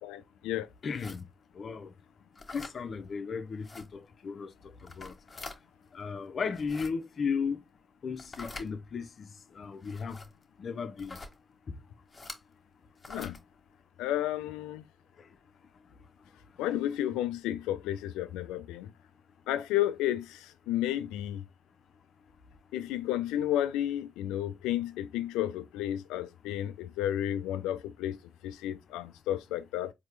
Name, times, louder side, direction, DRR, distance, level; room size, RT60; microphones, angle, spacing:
voice 1, 0.0-0.7 13.1-13.4 14.0-14.8 16.6-18.9 19.5-21.4 22.7-28.2 28.4-29.9, left 12 dB, 85° left, 0.4 m, -32 dB
voice 2, 0.8-1.2 1.6-1.9 2.5-4.5 4.8-5.1 5.9-7.6 8.0-9.3 9.5-10.2 10.6-11.2 11.7-11.8, left 5 dB, 55° left, 0.7 m, -35 dB
sound 1, 0.9-1.2 2.3-2.8 3.6-3.9 4.8-5.6 6.5-6.9 8.2-8.7 9.8-10.3 11.0-11.3 12.1-12.4 13.0-13.4, left 3 dB, 40° left, 1.5 m, -44 dB
4.3 x 2.9 x 3.3 m
hypercardioid pair, 45°, 0 cm